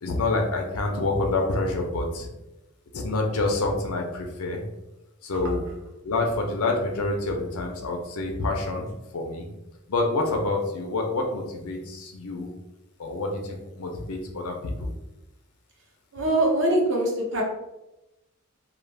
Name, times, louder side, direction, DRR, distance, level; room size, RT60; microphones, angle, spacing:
voice 1, 0.0-2.3 2.9-4.6 5.2-5.6 6.0-9.5 9.9-12.5 13.0-14.9, left 2 dB, 80° left, 2 dB, 0.5 m, -27 dB
voice 2, 16.1-17.4, right 1 dB, 60° right, -2 dB, 0.7 m, -23 dB
2.4 x 2.1 x 3.2 m, 0.96 s
head